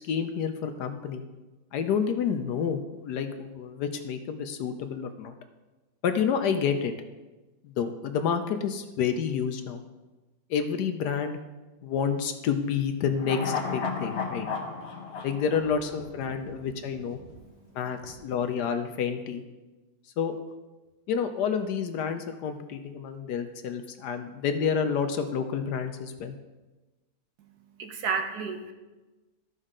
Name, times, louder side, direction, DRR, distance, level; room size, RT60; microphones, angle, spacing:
voice 1, 0.1-1.2 1.7-5.3 6.0-6.9 7.8-9.8 10.5-11.4 11.8-14.5 15.2-17.2 17.7-19.4 20.2-20.3 21.1-26.3, left 7 dB, 70° left, 7 dB, 1.1 m, -29 dB
sound 1, 13.2-16.6 16.9-17.0, left 5 dB, 45° left, 1.0 m, -33 dB
voice 2, 17.2-18.3 27.4-28.7, right 5 dB, 65° right, 5 dB, 1.2 m, -35 dB
13.5 x 5.4 x 3.7 m, 1.2 s
omnidirectional pair, 2.0 m